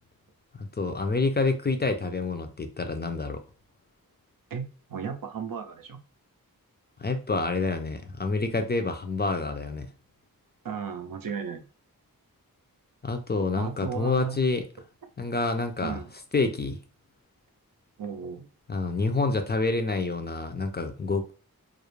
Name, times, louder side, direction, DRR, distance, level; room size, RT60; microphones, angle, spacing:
voice 1, 0.6-3.4 7.0-9.9 13.0-14.6 15.2-16.0 16.3-16.8 18.7-21.3, left 3 dB, 30° left, 0.3 m, -27 dB
voice 2, 4.5-6.0 10.6-11.7 13.5-14.4 15.8-16.1 18.0-18.5, right 6 dB, 70° right, 0.5 m, -35 dB
2.4 x 2.0 x 2.9 m
wide cardioid pair, 60°, 36 cm